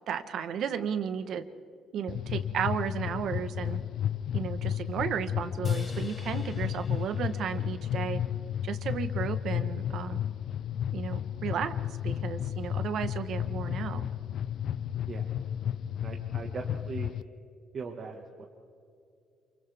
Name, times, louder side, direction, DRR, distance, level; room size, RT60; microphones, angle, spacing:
voice 1, 0.0-1.4 1.9-3.8 4.3-8.2 8.6-10.2 10.9-11.7 12.0-14.0, right 7 dB, 55° right, 10 dB, 1.2 m, -34 dB
sound 1, 2.1-17.2, left 9 dB, 55° left, 0.4 m, -33 dB
sound 2, 5.6-9.1, left 3 dB, 20° left, 1.8 m, -51 dB
voice 2, 16.0-17.1 17.7-18.5, right 5 dB, 35° right, 1 dB, 1.6 m, -40 dB
28.5 x 28.5 x 3.5 m, 2.4 s
cardioid pair, 165°, 0 cm